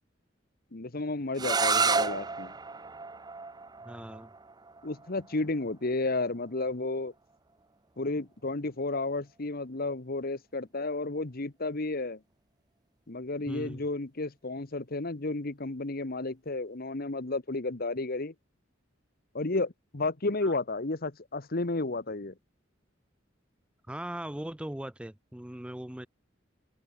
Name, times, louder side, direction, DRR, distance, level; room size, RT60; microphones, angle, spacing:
voice 1, 0.7-2.5 4.8-7.1 8.0-12.2 13.1-18.3 19.3-22.3, left 2 dB, 50° left, 1.3 m, -32 dB
sound 1, 1.3-7.1, right 4 dB, 20° right, 0.9 m, -32 dB
voice 2, 3.8-4.3 13.5-13.8 20.4-20.5 23.9-26.1, right 1 dB, 5° right, 0.5 m, -39 dB
head